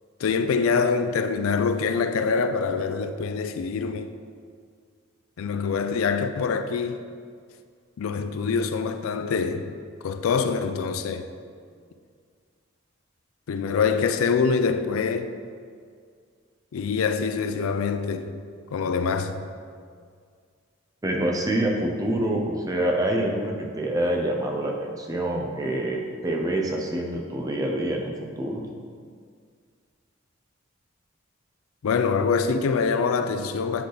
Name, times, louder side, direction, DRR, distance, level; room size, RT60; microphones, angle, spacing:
voice 1, 0.2-4.1 5.4-7.0 8.0-9.8 10.0-11.3 13.5-15.3 16.7-18.4 18.7-19.5 31.8-33.9, left 5 dB, 85° left, 0.4 m, -25 dB
voice 2, 21.0-28.6, right 1 dB, 15° right, 0.5 m, -26 dB
7.7 x 3.3 x 3.9 m
head